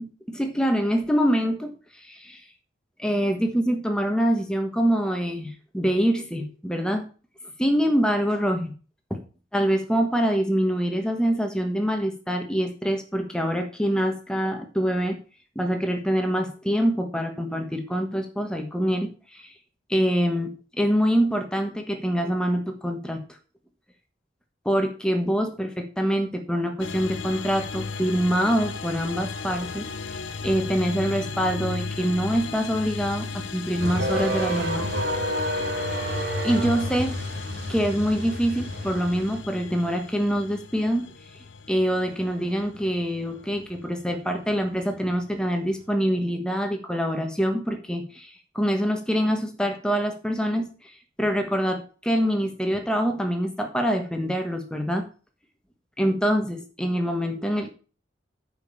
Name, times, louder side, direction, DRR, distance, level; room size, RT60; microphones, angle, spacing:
voice 1, 0.0-2.4 3.0-7.1 7.6-8.7 9.1-9.2 9.5-15.2 15.5-19.5 19.9-23.2 24.6-34.9 36.4-37.2 37.7-41.1 41.7-50.9 51.2-55.1 56.0-57.7, equal, 5° left, 4 dB, 1.3 m, -25 dB
sound 1, 26.8-45.9, left 4 dB, 85° left, 0.8 m, -36 dB
sound 2, 33.8-39.4, equal, 65° right, 2.0 m, -29 dB
9.2 x 5.3 x 5.5 m, 0.37 s
head